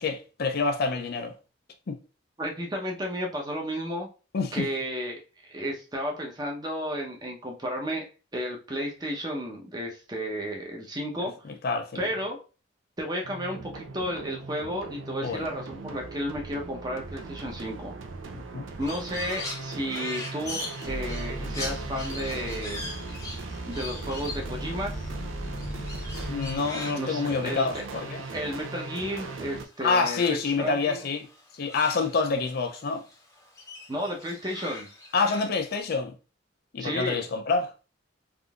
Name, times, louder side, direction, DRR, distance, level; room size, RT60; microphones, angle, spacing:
voice 1, 0.0-1.3 1.9-2.0 4.3-4.7 11.6-12.0 15.2-15.5 18.3-18.6 26.3-28.2 29.8-31.3 31.5-33.0 35.1-36.1 36.7-37.7, left 4 dB, 50° left, 0.4 m, -27 dB
voice 2, 2.4-4.1 4.5-5.2 5.5-8.0 8.3-11.4 11.9-12.4 13.0-17.9 18.8-22.8 23.7-25.0 26.9-27.7 28.3-31.0 33.9-34.9 36.8-37.2, equal, 20° right, 0.8 m, -32 dB
sound 1, 13.2-29.6, right 3 dB, 90° right, 0.5 m, -39 dB
Crow, 18.8-29.5 29.8-32.8 33.1-35.8, left 2 dB, 15° left, 0.8 m, -41 dB
sound 2, 20.8-26.6, equal, 80° left, 0.8 m, -37 dB
3.6 x 2.6 x 2.3 m
head